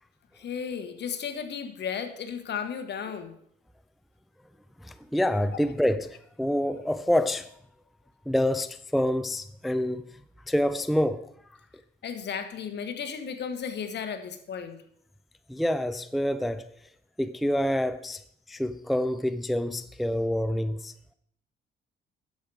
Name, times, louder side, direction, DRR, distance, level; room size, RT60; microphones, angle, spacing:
voice 1, 0.4-3.4 12.0-14.8, left 7 dB, 60° left, 1.3 m, -34 dB
voice 2, 4.8-7.5 8.3-10.0 10.5-11.3 15.5-16.7 17.2-18.2 18.5-20.9, left 1 dB, ahead, 0.4 m, -27 dB
10.5 x 7.7 x 4.8 m
cardioid pair, 90°, 20 cm